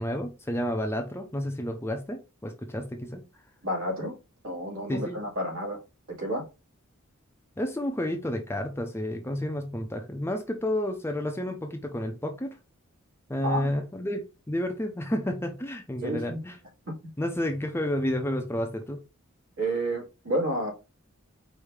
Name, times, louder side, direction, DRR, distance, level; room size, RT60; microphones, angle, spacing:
voice 1, 0.0-3.2 4.9-5.2 7.6-12.6 13.3-16.6 17.2-19.0, left 1 dB, 10° left, 0.6 m, -31 dB
voice 2, 3.6-4.2 4.4-5.8 6.2-6.4 13.4-13.7 16.0-16.4 16.9-17.0 19.6-20.7, right 1 dB, 70° right, 2.4 m, -30 dB
4.8 x 2.7 x 3.4 m
head